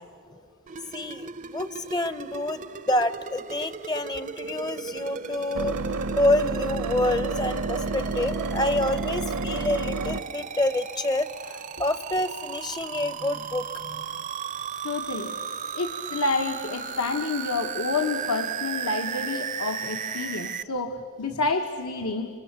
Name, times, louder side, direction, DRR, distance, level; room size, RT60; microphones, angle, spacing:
sound 1, 0.7-20.6, right 6 dB, 35° right, 0.5 m, -36 dB
voice 1, 0.9-14.3, left 1 dB, 20° left, 14 dB, 0.6 m, -28 dB
sound 2, 4.4-10.5, right 3 dB, 70° right, 0.8 m, -30 dB
voice 2, 14.8-15.3 15.7-22.3, left 3 dB, 85° left, 6 dB, 1.3 m, -29 dB
28.0 x 25.0 x 7.4 m, 2.5 s
head